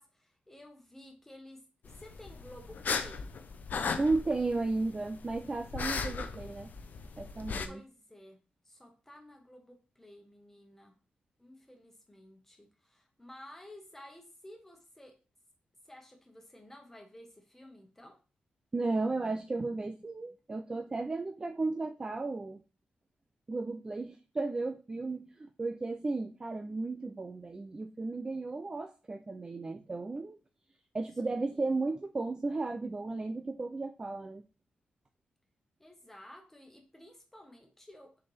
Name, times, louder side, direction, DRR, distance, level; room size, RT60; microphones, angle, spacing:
voice 1, 0.0-3.3 7.7-8.4 8.6-10.9 11.4-15.2 15.8-18.2 31.2-31.7 35.8-38.3, left 1 dB, 10° left, 3 dB, 1.4 m, -53 dB
sound 1, 1.9-7.7, left 5 dB, 60° left, 0.6 m, -37 dB
voice 2, 4.0-6.7 7.2-7.8 18.7-22.6 23.5-30.4 30.9-34.4, right 3 dB, 25° right, 6 dB, 0.4 m, -34 dB
6.6 x 4.2 x 3.4 m, 0.33 s
wide cardioid pair, 135°, 3 cm